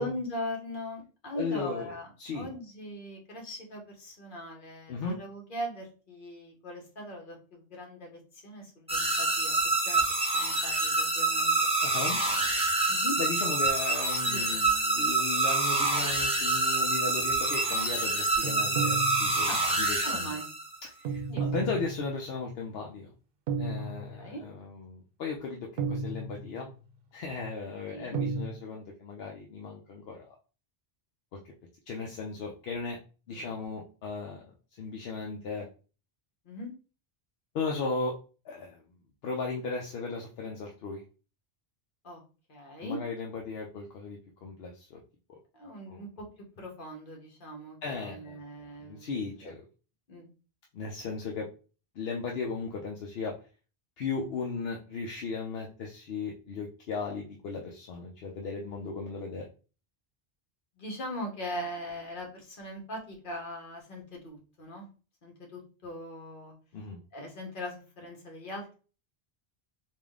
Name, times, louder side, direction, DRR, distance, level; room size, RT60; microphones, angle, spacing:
voice 1, 0.0-9.6 9.8-11.7 12.9-13.2 14.2-14.6 19.5-19.6 20.0-20.5 21.3-21.5 23.8-23.9 24.1-24.4 27.9-28.2 33.3-33.5 36.4-36.7 42.0-42.2 42.5-43.0 45.5-46.3 46.6-49.1 49.4-49.5 50.1-50.3 60.8-64.9 65.2-66.5 67.1-68.8, equal, 55° left, 1 dB, 1.2 m, -40 dB
voice 2, 1.3-1.9 2.2-2.5 4.9-5.2 11.8-12.2 12.7-20.3 20.8-23.1 23.6-26.7 27.1-30.3 31.9-33.0 33.3-35.7 37.5-38.2 38.4-38.8 39.2-41.0 42.8-45.0 45.9-46.0 47.8-49.6 50.7-51.5 51.9-53.3 54.0-59.5 66.7-67.0, left 4 dB, 75° left, 0 dB, 0.8 m, -36 dB
sound 1, 8.9-20.8, right 2 dB, 5° right, 0.7 m, -27 dB
sound 2, 18.4-19.7 21.0-22.3 23.5-24.4 25.8-26.7 28.1-28.5, right 4 dB, 65° right, 0.7 m, -33 dB
3.6 x 2.4 x 3.5 m, 0.36 s
omnidirectional pair, 1.0 m